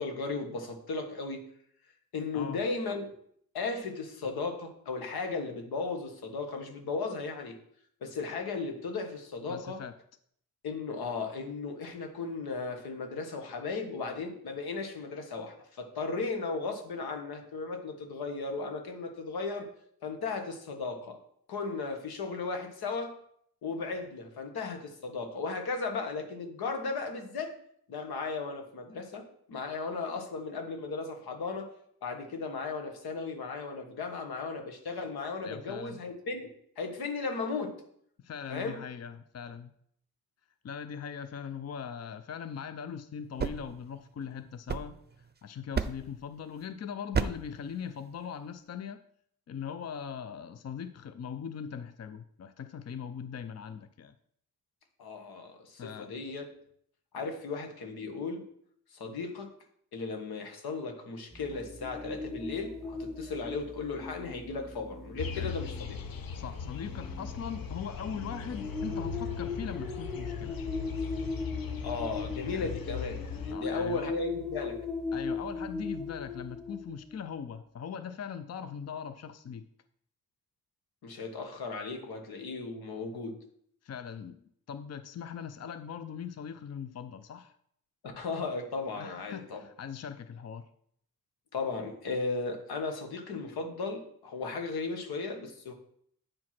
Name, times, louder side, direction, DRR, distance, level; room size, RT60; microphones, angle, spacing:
voice 1, 0.0-1.4 2.1-3.1 3.5-7.6 8.0-9.8 10.6-19.7 20.0-21.2 21.5-23.1 23.6-27.5 27.9-31.7 32.0-37.8 38.5-38.8 55.0-56.5 57.1-58.4 58.9-59.5 59.9-66.0 71.8-74.8 81.0-83.4 88.2-89.6 91.5-95.7, left 4 dB, 90° left, 4 dB, 1.5 m, -36 dB
voice 2, 9.5-9.9 35.4-36.0 38.2-39.7 40.6-45.0 45.4-49.0 49.5-54.1 55.8-56.1 65.4-65.6 66.3-70.6 72.5-72.7 73.5-74.1 75.1-79.7 83.8-87.6 89.0-90.7, left 7 dB, 45° left, 11 dB, 0.6 m, -40 dB
sound 1, 43.1-45.3 45.7-46.2 47.1-47.6, right 6 dB, 30° right, 0.6 m, -34 dB
sound 2, 61.3-77.3, left 3 dB, ahead, 1.0 m, -39 dB
sound 3, 65.2-73.5, left 7 dB, 70° left, 1.0 m, -39 dB
8.6 x 4.7 x 5.9 m, 0.67 s
cardioid pair, 70°, 36 cm